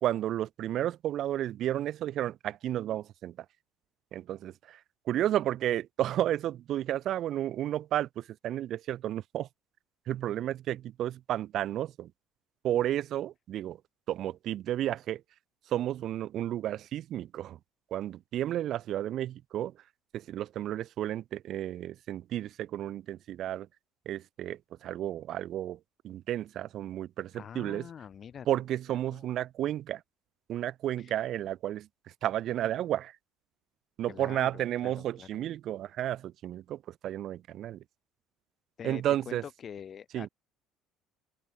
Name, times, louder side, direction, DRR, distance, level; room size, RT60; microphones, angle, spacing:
voice 1, 0.0-3.5 4.1-4.8 5.1-9.5 10.1-12.1 12.6-13.8 14.1-15.2 15.7-17.6 17.9-19.7 20.1-23.7 24.1-25.8 26.0-27.9 28.5-30.0 30.5-31.9 32.2-33.2 34.0-37.8 38.8-39.4 40.1-40.3, right 12 dB, 60° right, 0.3 m, -32 dB
voice 2, 27.3-28.5 28.9-29.3 31.0-31.1 34.1-35.4 38.8-40.3, left 8 dB, 45° left, 1.9 m, -45 dB
supercardioid pair, 75°, 0 cm